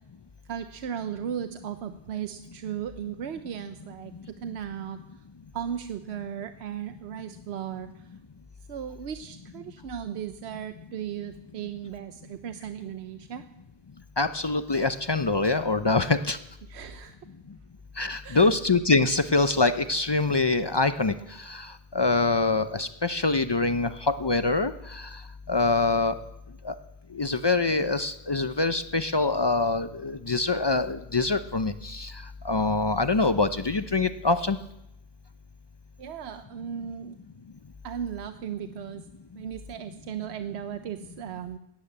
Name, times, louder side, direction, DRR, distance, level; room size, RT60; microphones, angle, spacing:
voice 1, 0.5-5.0 5.5-8.1 8.7-13.4 16.7-17.2 18.2-18.5 36.0-37.2 37.8-39.0 39.3-41.6, right 9 dB, 90° right, 9 dB, 1.0 m, -36 dB
voice 2, 14.2-16.4 18.0-21.1 21.5-21.7 21.9-25.0 25.5-26.2 26.6-26.7 27.1-32.1 32.4-34.6, left 3 dB, 40° left, 11 dB, 0.4 m, -24 dB
13.5 x 9.5 x 8.6 m, 0.85 s
omnidirectional pair, 1.1 m